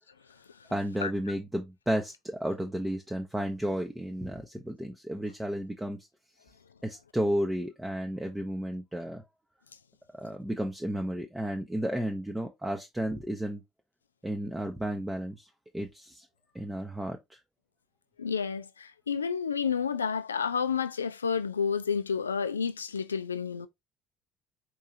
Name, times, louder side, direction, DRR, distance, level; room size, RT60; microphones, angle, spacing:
voice 1, 0.7-6.0 6.8-9.2 10.2-13.6 14.2-15.5 15.7-16.3 16.5-17.4, equal, 10° right, 0.7 m, -32 dB
voice 2, 18.2-23.7, left 6 dB, 80° left, 0.3 m, -30 dB
4.6 x 3.1 x 2.6 m
figure-of-eight pair, 55°, 0 cm